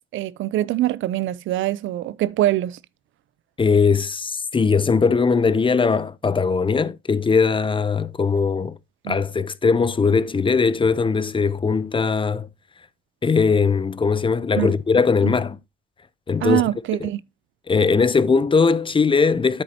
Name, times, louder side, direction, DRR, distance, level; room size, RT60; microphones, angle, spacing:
voice 1, 0.1-2.8 9.0-9.2 14.6-14.7 15.2-15.4 16.4-17.2, right 14 dB, 80° right, 0.5 m, -23 dB
voice 2, 3.6-8.8 9.1-12.5 13.2-15.6 16.3-16.6 17.0-17.1 17.7-19.6, left 5 dB, 25° left, 0.6 m, -20 dB
9.9 x 8.2 x 2.8 m
cardioid pair, 90°, 20 cm